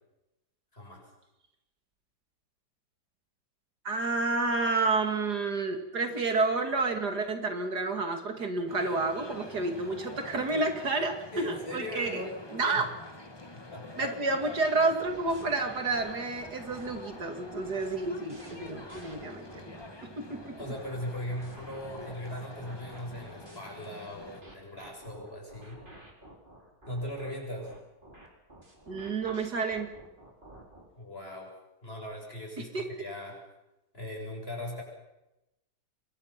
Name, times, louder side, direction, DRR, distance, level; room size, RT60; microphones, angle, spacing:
voice 1, 0.7-1.0 11.3-12.3 12.7-12.8 13.7-14.1 20.6-25.8 26.9-27.7 31.0-31.5 31.8-33.4 33.9-34.8, left 1 dB, 35° left, 0 dB, 7.8 m, -39 dB
voice 2, 3.8-12.2 12.5-12.9 14.0-19.7 20.0-20.6 28.9-29.9 32.6-32.9, right 3 dB, 70° right, 5 dB, 3.0 m, -30 dB
sound 1, 8.7-24.4, left 2 dB, 15° left, 1.5 m, -47 dB
sound 2, 15.0-19.9 20.3-23.6 24.2-30.9, right 1 dB, 30° right, 4.7 m, -52 dB
27.0 x 23.0 x 5.9 m, 0.94 s
omnidirectional pair, 1.8 m